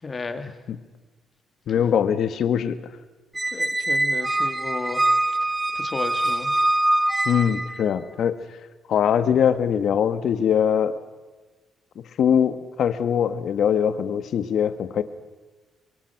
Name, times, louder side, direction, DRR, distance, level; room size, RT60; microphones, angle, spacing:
voice 1, 0.0-0.6 3.5-5.0 5.7-6.6, left 4 dB, 30° left, 8 dB, 2.4 m, -33 dB
voice 2, 1.7-2.8 7.2-8.4 8.9-10.9 12.2-15.0, left 8 dB, 65° left, 11 dB, 1.6 m, -22 dB
Squeak, 3.4-7.8, right 1 dB, 15° right, 1.0 m, -23 dB
25.5 x 23.0 x 6.0 m, 1.3 s
cardioid pair, 90°, 0 cm